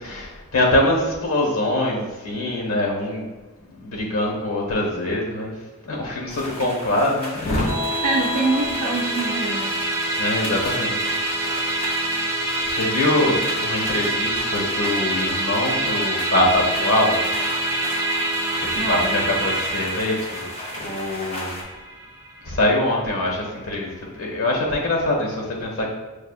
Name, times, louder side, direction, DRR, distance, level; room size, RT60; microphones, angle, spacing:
voice 1, 0.0-3.3 3.7-5.5 5.8-7.8 10.2-11.1 12.6-17.2 18.6-20.5 20.7-21.6 22.4-25.9, left 1 dB, 75° left, -1 dB, 1.2 m, -23 dB
sound 1, 6.3-21.6, left 1 dB, 30° left, 0.7 m, -36 dB
Musical instrument, 7.7-23.2, right 2 dB, 15° right, 0.5 m, -26 dB
voice 2, 8.0-9.7 18.7-19.2, right 3 dB, 80° right, -4 dB, 0.5 m, -24 dB
6.5 x 2.3 x 2.4 m, 1.2 s
head